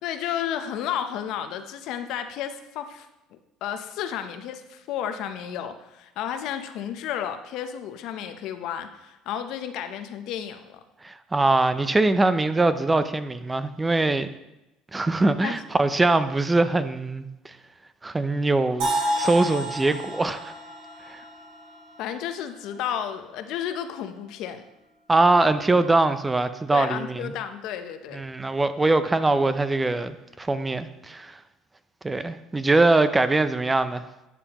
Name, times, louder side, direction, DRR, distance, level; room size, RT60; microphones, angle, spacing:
voice 1, 0.0-3.1 3.6-10.8 15.4-15.6 22.0-24.6 26.7-28.2, left 9 dB, 70° left, 8 dB, 0.7 m, -32 dB
voice 2, 11.0-14.3 14.9-17.6 18.0-18.9 19.2-20.5 21.1-21.2 25.1-27.3 28.1-31.4 32.0-34.0, right 2 dB, 15° right, 12 dB, 0.5 m, -22 dB
sound 1, 18.8-22.7, right 1 dB, 80° right, 3.4 m, -30 dB
11.0 x 6.9 x 3.0 m, 0.95 s
supercardioid pair, 95°, 0 cm